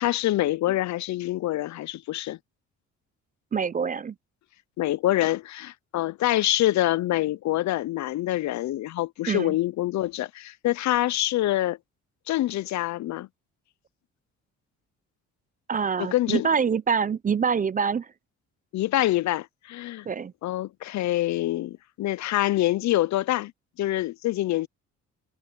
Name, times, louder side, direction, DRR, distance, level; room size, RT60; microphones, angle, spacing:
voice 1, 0.0-2.4 4.8-11.8 12.3-13.3 16.0-16.5 18.7-20.1 20.4-23.5 23.8-24.7, left 15 dB, 70° left, 0.6 m, -25 dB
voice 2, 3.5-4.1 9.3-9.6 15.7-18.1 20.1-20.3, right 6 dB, 30° right, 0.5 m, -25 dB
cardioid pair, 90°, 30 cm